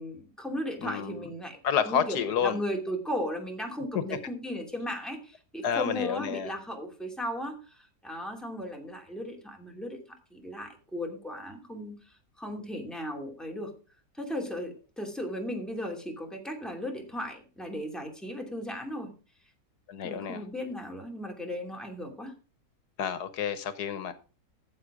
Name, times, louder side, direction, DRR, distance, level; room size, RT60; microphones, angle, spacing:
voice 1, 0.0-1.6 1.9-10.0 10.3-13.7 14.1-19.1 20.0-22.3, equal, ahead, 2.7 m, -36 dB
voice 2, 0.8-1.2 1.6-2.6 5.6-6.5 19.9-20.4 23.0-24.1, left 8 dB, 85° left, 1.5 m, -29 dB
14.5 x 7.5 x 5.0 m
omnidirectional pair, 1.7 m